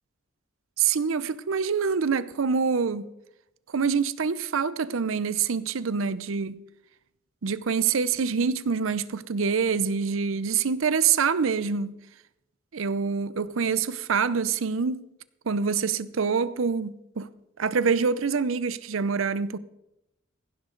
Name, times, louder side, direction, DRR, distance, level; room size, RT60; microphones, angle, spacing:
voice 1, 0.8-3.1 3.7-6.6 7.4-11.9 12.7-15.1 15.5-17.3 17.6-19.6, right 6 dB, 75° right, 0.6 m, -26 dB
15.5 x 11.5 x 3.8 m
head